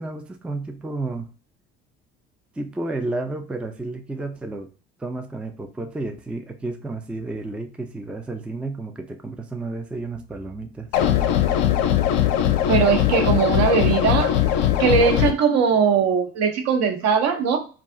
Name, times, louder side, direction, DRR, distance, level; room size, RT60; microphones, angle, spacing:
voice 1, 0.0-1.3 2.6-4.7 5.0-10.9, right 2 dB, 5° right, 6 dB, 0.4 m, -31 dB
sound 1, 10.9-15.3, left 11 dB, 65° left, 0.5 m, -20 dB
voice 2, 12.7-14.3 14.8-17.7, right 6 dB, 60° right, 5 dB, 0.8 m, -20 dB
2.4 x 2.4 x 3.6 m, 0.36 s
hypercardioid pair, 60°, 30 cm